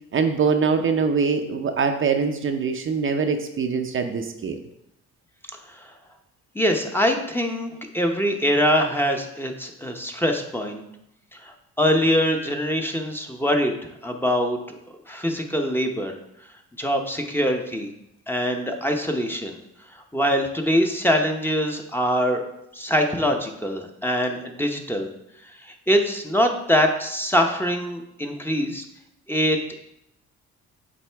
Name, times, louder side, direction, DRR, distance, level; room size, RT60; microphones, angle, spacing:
voice 1, 0.1-4.6, right 5 dB, 45° right, 5 dB, 0.6 m, -23 dB
voice 2, 6.5-10.8 11.3-13.8 14.0-14.8 15.1-16.1 16.8-17.9 18.3-19.6 19.9-22.4 22.7-25.1 25.5-28.8 29.3-29.8, equal, 5° left, 3 dB, 0.8 m, -23 dB
7.5 x 4.2 x 3.4 m, 0.82 s
cardioid pair, 90°, 30 cm